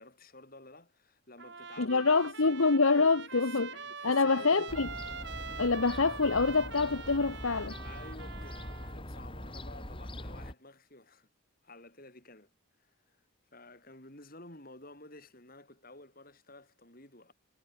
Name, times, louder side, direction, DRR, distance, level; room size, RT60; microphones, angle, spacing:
voice 1, 0.0-2.6 3.3-4.7 7.8-11.3 11.6-12.5 12.8-13.2 13.5-17.3, left 2 dB, 40° left, 5.8 m, -52 dB
Trumpet, 1.4-9.0, right 5 dB, 55° right, 2.4 m, -44 dB
voice 2, 1.8-3.7 4.0-4.9 5.6-7.8, left 4 dB, 70° left, 1.1 m, -26 dB
Fowl / Gull seagull, 4.7-10.5, left 1 dB, 25° left, 5.5 m, -43 dB
head